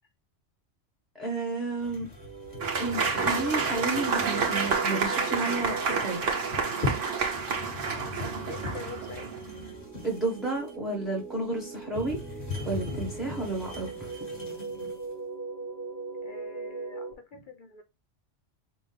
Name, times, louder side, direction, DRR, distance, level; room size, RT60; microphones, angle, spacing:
voice 1, 1.1-2.1 2.8-6.2 10.0-12.2 12.6-14.1, right 2 dB, ahead, 1.0 m, -32 dB
sound 1, 1.8-15.1, left 3 dB, 35° left, 2.2 m, -39 dB
sound 2, 2.1-17.1, right 4 dB, 60° right, 1.1 m, -40 dB
Applause / Crowd, 2.6-9.4, right 5 dB, 85° right, 1.4 m, -29 dB
voice 2, 8.1-9.3 16.2-17.8, left 4 dB, 55° left, 0.6 m, -45 dB
5.7 x 2.5 x 3.3 m
omnidirectional pair, 1.2 m